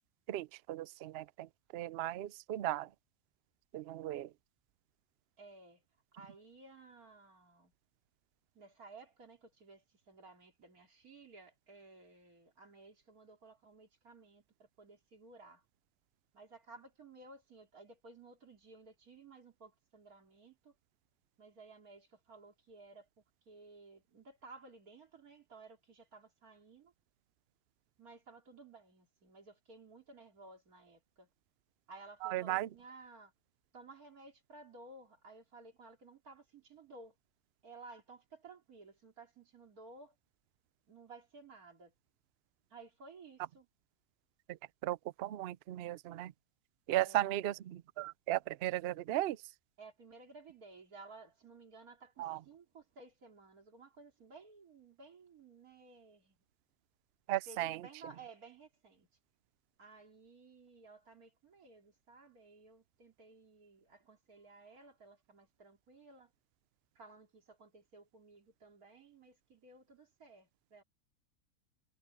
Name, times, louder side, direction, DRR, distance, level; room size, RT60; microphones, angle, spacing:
voice 1, 0.3-1.5 1.7-2.9 3.7-4.3 32.2-32.7 44.5-44.6 44.8-46.3 46.9-49.4 52.2-52.4 57.3-57.8, right 14 dB, 85° right, 0.5 m, -36 dB
voice 2, 5.4-5.8 6.1-7.7 8.5-15.6 16.3-20.7 21.4-23.1 23.4-26.9 28.0-31.3 31.9-33.3 33.7-37.1 37.6-40.1 40.9-41.9 42.7-43.7 46.9-47.3 49.8-56.4 57.4-59.1 59.8-66.3 66.9-70.8, right 3 dB, 70° right, 3.4 m, -56 dB
omnidirectional pair, 1.6 m